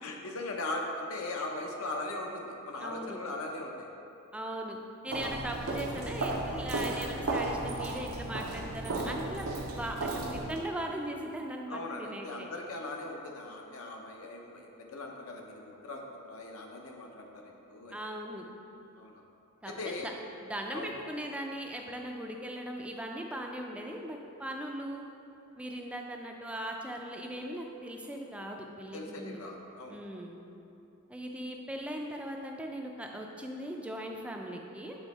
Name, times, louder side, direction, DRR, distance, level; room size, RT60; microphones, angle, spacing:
voice 1, 0.0-3.9 5.2-5.4 11.7-18.0 18.9-19.3 19.6-20.1 20.7-20.9 28.9-30.0, left 2 dB, 70° left, 1 dB, 0.7 m, -39 dB
voice 2, 2.8-3.2 4.3-4.8 5.0-12.5 17.9-18.5 19.6-20.1 20.4-25.0 25.6-29.4 29.9-30.4 31.1-35.0, right 1 dB, 5° right, 1 dB, 0.4 m, -39 dB
Walk footsteps, 5.1-10.7, right 2 dB, 75° right, 0.7 m, -34 dB
7.2 x 3.5 x 4.1 m, 2.8 s
head